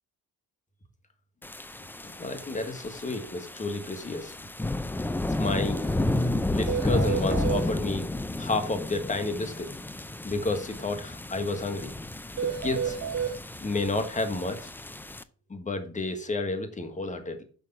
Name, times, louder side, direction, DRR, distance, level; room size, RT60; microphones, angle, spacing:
sound 1, 1.4-15.2, left 2 dB, 5° left, 0.5 m, -32 dB
voice 1, 2.0-4.3 5.3-5.8 6.5-8.1 8.4-9.7 10.2-11.9 12.4-13.0 13.6-14.7 15.5-17.4, left 2 dB, 25° left, 7 dB, 1.6 m, -31 dB
sound 2, 5.4-5.5 5.8-5.9 6.2-6.3 6.7-7.6 12.4-13.3, right 8 dB, 60° right, 1.5 m, -31 dB
6.7 x 5.5 x 5.2 m, 0.41 s
cardioid pair, 90°, 30 cm